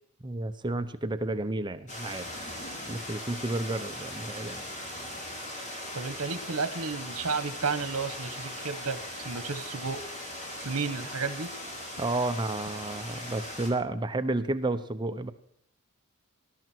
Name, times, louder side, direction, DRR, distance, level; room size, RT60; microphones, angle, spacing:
voice 1, 0.2-2.3 2.9-4.7 12.0-15.3, right 2 dB, 20° right, 9 dB, 0.8 m, -31 dB
sound 1, 1.9-13.7, left 1 dB, 35° left, 4.8 m, -39 dB
voice 2, 5.9-10.0 10.6-11.5, right 4 dB, 75° right, 13 dB, 1.4 m, -32 dB
20.0 x 12.0 x 4.5 m, 0.68 s
head